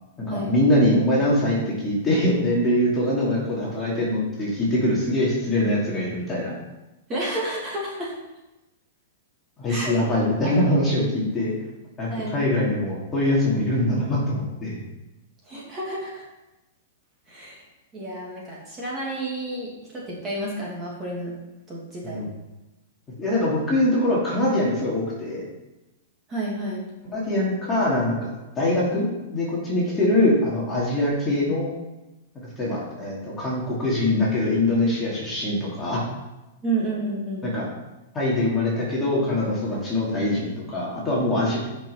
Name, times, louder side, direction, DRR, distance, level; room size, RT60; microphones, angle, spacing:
voice 1, 0.2-6.5 9.6-11.5 12.0-14.8 22.0-22.3 23.2-25.4 27.1-28.3 28.6-31.7 32.6-36.0 37.4-37.6 38.1-41.6, left 1 dB, 15° left, -6 dB, 2.5 m, -23 dB
voice 2, 7.1-8.1 9.7-9.9 12.1-12.4 15.4-16.2 17.3-17.6 17.9-21.3 21.7-22.3 26.3-26.8 36.6-37.4, right 2 dB, 20° right, -5 dB, 2.5 m, -30 dB
9.9 x 5.7 x 5.7 m, 1.0 s
hypercardioid pair, 160°, 0 cm